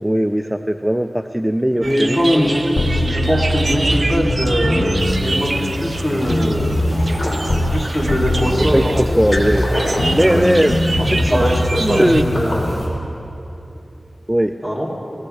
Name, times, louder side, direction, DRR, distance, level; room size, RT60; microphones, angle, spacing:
voice 1, 0.0-2.2 8.7-9.7 10.1-10.8 11.3-11.4 11.8-12.4 14.3-14.6, equal, 10° right, 7 dB, 0.4 m, -18 dB
voice 2, 1.7-6.9 7.5-9.4 10.3-10.4 11.0-12.9 14.6-14.9, equal, 15° left, -4 dB, 3.1 m, -21 dB
sound 1, 1.8-12.2, right 2 dB, 60° right, 0.6 m, -28 dB
sound 2, 2.8-7.8 8.1-12.9, left 1 dB, 80° left, 1.8 m, -21 dB
sound 3, 5.0-12.9, left 1 dB, 60° left, 3.9 m, -28 dB
20.0 x 18.0 x 3.4 m, 2.8 s
wide cardioid pair, 65°, 0 cm